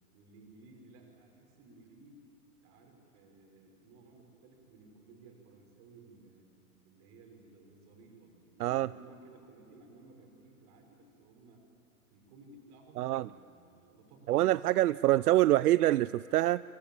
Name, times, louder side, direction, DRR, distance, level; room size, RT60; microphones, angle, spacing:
voice 1, 0.1-2.2 2.6-6.5 6.8-11.6 12.1-14.6, right 3 dB, 35° right, 2 dB, 6.1 m, -57 dB
voice 2, 14.3-16.6, right 15 dB, 80° right, 18 dB, 0.5 m, -25 dB
23.0 x 22.5 x 8.9 m, 2.9 s
hypercardioid pair, 140°, 45 cm